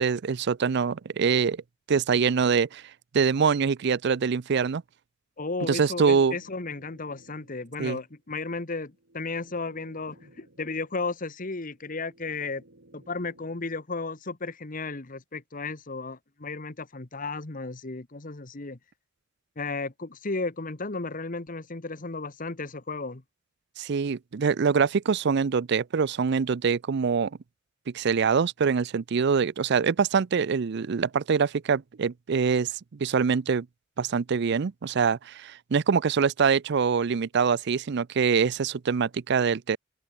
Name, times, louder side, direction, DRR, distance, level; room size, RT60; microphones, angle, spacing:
voice 1, 0.0-1.6 1.9-2.8 3.1-4.8 5.7-6.4 7.8-8.0 23.8-27.3 27.9-33.7 34.0-39.8, right 6 dB, 60° right, 0.5 m, -24 dB
voice 2, 5.4-12.6 12.9-18.8 19.6-23.2, left 3 dB, 45° left, 1.4 m, -34 dB
sound 1, 5.7-13.8, right 1 dB, 75° right, 3.8 m, -59 dB
open air
head